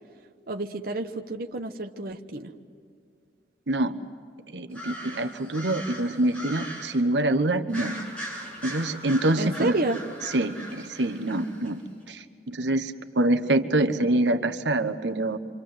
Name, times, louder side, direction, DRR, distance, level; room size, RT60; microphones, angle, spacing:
voice 1, 0.5-2.5 9.3-10.0, right 2 dB, 55° right, 4 dB, 1.0 m, -30 dB
voice 2, 4.5-7.9 8.6-9.8 10.3-11.8 12.1-15.4, right 1 dB, 85° right, 8 dB, 1.2 m, -25 dB
sound 1, 4.7-7.0 7.7-11.7, right 1 dB, 5° left, 7.7 m, -39 dB
27.0 x 25.5 x 7.9 m, 2.3 s
head